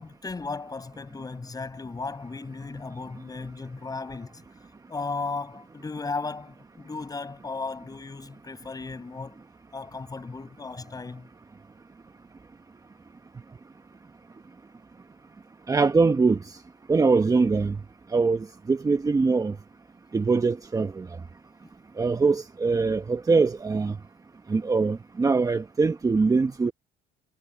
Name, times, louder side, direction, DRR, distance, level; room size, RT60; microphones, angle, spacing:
voice 1, 0.0-4.4 4.9-9.4 9.7-11.3, left 4 dB, 20° left, 6.9 m, -35 dB
voice 2, 15.7-16.4 16.9-17.8 18.1-19.5 20.1-21.0 22.0-24.0 24.5-26.7, right 4 dB, 20° right, 1.1 m, -22 dB
cardioid pair, 110°, 17 cm